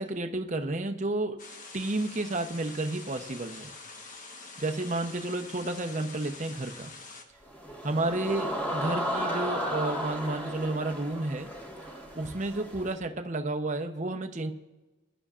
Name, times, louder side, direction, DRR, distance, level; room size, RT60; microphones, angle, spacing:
voice 1, 0.0-1.4 1.7-3.7 4.6-6.9 7.8-11.5 12.1-14.5, right 2 dB, 40° right, 5 dB, 0.8 m, -31 dB
sound 1, 1.4-7.2, left 3 dB, 40° left, 1.2 m, -46 dB
sound 2, 7.4-12.9, equal, 10° left, 1.7 m, -34 dB
21.0 x 11.0 x 2.5 m, 1.1 s
head